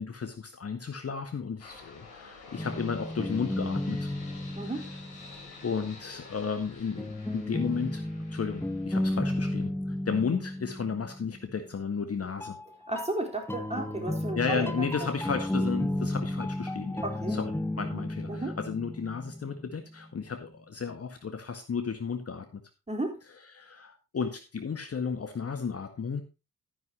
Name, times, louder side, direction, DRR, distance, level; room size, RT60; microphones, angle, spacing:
voice 1, 0.0-4.1 5.6-8.0 8.3-12.6 14.3-22.6 23.5-26.2, left 5 dB, 30° left, 6 dB, 1.8 m, -33 dB
sound 1, 1.6-9.6, left 4 dB, 75° left, 3.3 m, -50 dB
sound 2, 2.6-5.7 7.0-11.6 12.4-20.1, left 1 dB, 5° left, 1.1 m, -33 dB
voice 2, 4.6-4.9 12.9-14.9 17.0-17.4 17.9-18.0 18.3-18.6 22.9-23.2, right 2 dB, 15° right, 2 dB, 4.1 m, -33 dB
13.5 x 10.5 x 3.0 m, 0.28 s
figure-of-eight pair, 45°, 44 cm